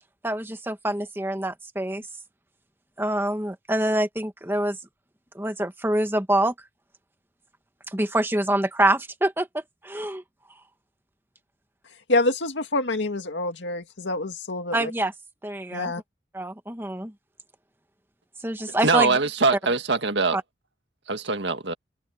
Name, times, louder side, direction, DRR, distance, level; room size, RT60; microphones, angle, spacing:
voice 1, 0.2-2.0 3.0-4.8 5.3-6.5 7.9-10.2 14.7-15.1 15.4-15.9 16.3-17.1 18.4-19.2 20.3-20.4, right 1 dB, 10° right, 1.5 m, -26 dB
voice 2, 12.1-14.9 15.7-16.0, left 2 dB, 90° left, 2.1 m, -26 dB
voice 3, 18.8-20.4 21.1-21.7, right 3 dB, 85° right, 1.8 m, -23 dB
head